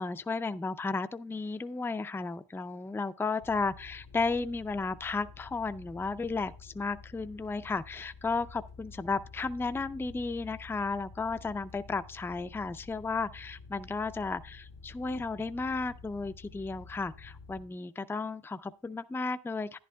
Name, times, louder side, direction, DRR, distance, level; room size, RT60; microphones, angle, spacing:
voice 1, 0.0-19.8, left 4 dB, 5° left, 0.3 m, -34 dB
sound 1, 3.4-17.7, left 4 dB, 80° left, 1.2 m, -50 dB
11.0 x 11.0 x 2.2 m
wide cardioid pair, 145°, 37 cm